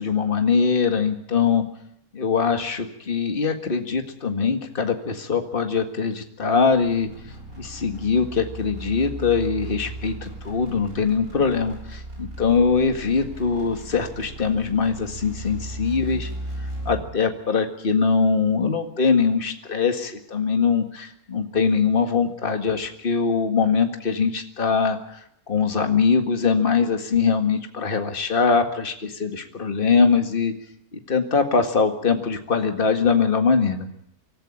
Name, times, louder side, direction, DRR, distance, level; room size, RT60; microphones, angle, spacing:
voice 1, 0.0-1.6 2.1-7.1 7.6-16.3 16.9-30.5 30.9-33.9, left 5 dB, 35° left, 6 dB, 2.0 m, -22 dB
sound 1, 6.7-17.2, right 1 dB, 65° right, 7.5 m, -36 dB
25.5 x 14.0 x 8.7 m, 0.77 s
omnidirectional pair, 1.6 m